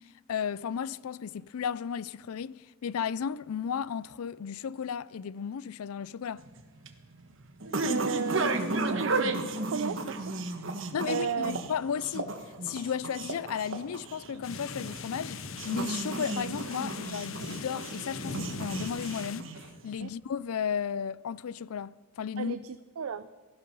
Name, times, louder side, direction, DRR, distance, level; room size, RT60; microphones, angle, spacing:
voice 1, 0.3-6.4 10.9-12.3 12.6-22.6, left 7 dB, 90° left, 0.4 m, -34 dB
sound 1, 6.4-19.9, right 2 dB, 60° right, 1.4 m, -34 dB
voice 2, 7.8-10.8 11.0-11.5 20.0-20.1 22.4-23.3, right 6 dB, 85° right, 0.5 m, -35 dB
sound 2, 14.4-19.4, left 4 dB, 70° left, 0.9 m, -40 dB
17.5 x 15.0 x 5.5 m
head